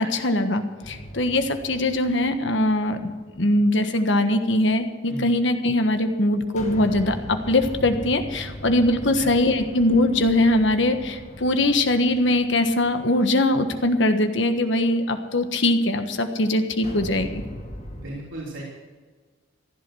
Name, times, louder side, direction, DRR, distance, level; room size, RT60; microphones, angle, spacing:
voice 1, 0.0-3.0 3.4-7.2 7.5-17.4, left 1 dB, 70° left, 7 dB, 1.4 m, -21 dB
sound 1, 0.8-3.4 6.6-13.8 16.8-18.0, equal, 35° left, 2.4 m, -39 dB
voice 2, 9.2-9.5 17.9-18.6, right 1 dB, 85° right, -4 dB, 3.4 m, -36 dB
15.5 x 11.5 x 6.3 m, 1.5 s
head